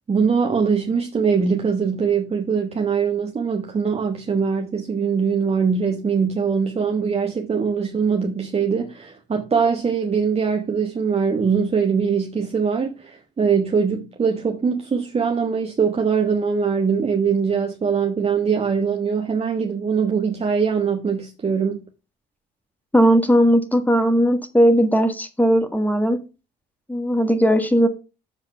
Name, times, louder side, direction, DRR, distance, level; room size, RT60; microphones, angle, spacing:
voice 1, 0.1-21.8, right 6 dB, 30° right, 1.2 m, -22 dB
voice 2, 22.9-26.2 26.9-27.9, equal, 10° left, 1.6 m, -17 dB
7.3 x 4.9 x 5.8 m
hypercardioid pair, 65°, 21 cm